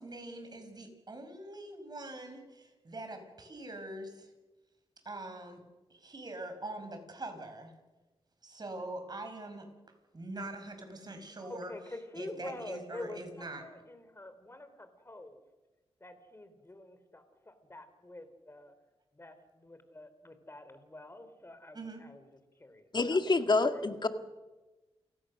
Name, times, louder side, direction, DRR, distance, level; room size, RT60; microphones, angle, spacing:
voice 1, 0.0-4.3 5.1-5.6 5.9-7.7 8.4-9.7 10.1-11.7 12.2-13.6 21.7-22.0, right 2 dB, 40° right, 6 dB, 5.3 m, -43 dB
voice 2, 11.4-15.4 16.0-18.7 19.1-23.8, left 2 dB, 25° left, 10 dB, 3.3 m, -47 dB
voice 3, 22.9-24.1, left 3 dB, 45° left, 8 dB, 1.9 m, -27 dB
29.0 x 16.5 x 6.4 m, 1.1 s
cardioid pair, 70°, 11 cm